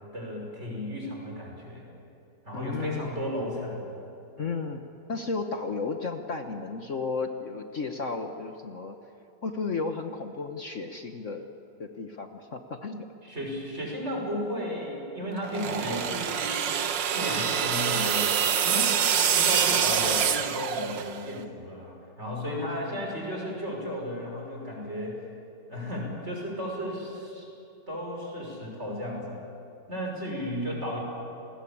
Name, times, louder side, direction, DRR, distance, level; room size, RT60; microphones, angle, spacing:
voice 1, 0.1-1.8 2.4-3.8 4.4-4.5 13.2-16.7 17.1-18.9 19.3-25.2 25.7-27.4 27.9-29.4 29.9-31.0, equal, 35° right, -1 dB, 6.4 m, -34 dB
voice 2, 2.5-3.2 4.4-4.8 5.1-8.9 9.4-11.5 11.8-13.1 22.4-23.0, left 4 dB, 50° left, 5 dB, 1.4 m, -33 dB
sound 1, 15.4-21.3, right 8 dB, 90° right, 1.8 m, -26 dB
28.5 x 20.5 x 8.7 m, 2.7 s
omnidirectional pair, 1.9 m